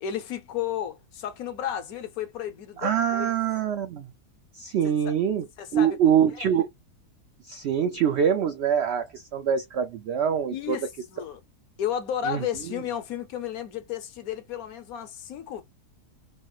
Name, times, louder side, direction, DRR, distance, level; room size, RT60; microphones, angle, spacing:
voice 1, 0.0-3.4 4.8-5.1 5.6-6.0 6.4-6.5 10.5-11.4 11.8-15.6, left 9 dB, 70° left, 1.1 m, -33 dB
voice 2, 2.8-4.1 4.5-5.5 5.7-6.7 7.5-10.8 12.3-12.4, right 8 dB, 85° right, 0.6 m, -24 dB
3.2 x 2.4 x 2.9 m
omnidirectional pair, 1.7 m